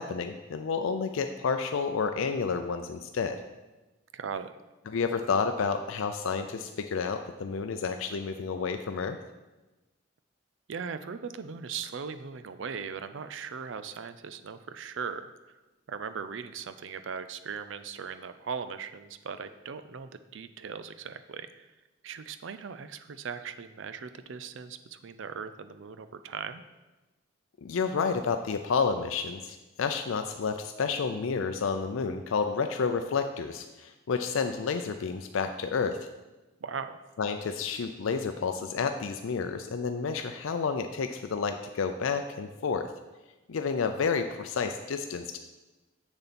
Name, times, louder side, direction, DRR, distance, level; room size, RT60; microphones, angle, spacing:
voice 1, 0.0-3.4 4.9-9.2 27.6-36.0 37.2-42.9 43.5-45.4, left 5 dB, 85° left, 7 dB, 0.5 m, -30 dB
voice 2, 4.1-4.5 10.7-15.6 15.9-21.7 22.0-26.6 36.6-37.0, right 6 dB, 70° right, 11 dB, 0.5 m, -39 dB
7.2 x 6.7 x 4.2 m, 1.1 s
head